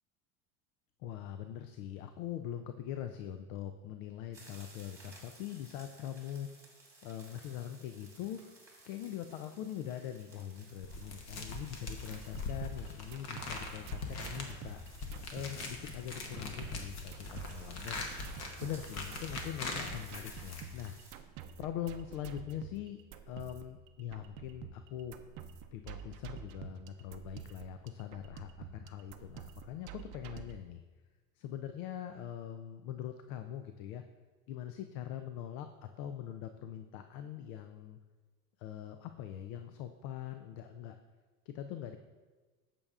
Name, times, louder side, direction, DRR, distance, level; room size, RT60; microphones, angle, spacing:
voice 1, 1.0-6.5 7.0-8.4 8.9-14.8 15.3-18.1 18.6-21.0 21.6-23.0 23.3-25.2 25.7-30.8 31.4-34.0 34.5-38.0 38.6-41.0 41.5-42.0, left 10 dB, 75° left, 8 dB, 0.5 m, -42 dB
sound 1, 4.3-21.1, right 2 dB, 5° right, 1.6 m, -58 dB
sound 2, 10.8-21.0, left 3 dB, 40° left, 0.9 m, -42 dB
sound 3, 12.0-30.5, right 8 dB, 50° right, 0.5 m, -49 dB
8.6 x 6.9 x 2.4 m, 1.3 s
supercardioid pair, 140°, 42 cm